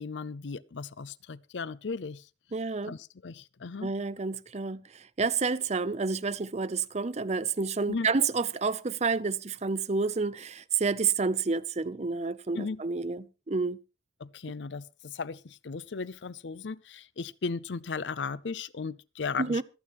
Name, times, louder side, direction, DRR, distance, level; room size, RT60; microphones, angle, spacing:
voice 1, 0.0-2.3 2.9-3.9 7.9-8.1 12.6-12.8 14.2-19.6, left 4 dB, 90° left, 0.6 m, -36 dB
voice 2, 2.5-2.9 3.8-4.8 5.2-13.8 19.4-19.6, right 4 dB, 40° right, 0.6 m, -29 dB
25.5 x 8.6 x 3.1 m
head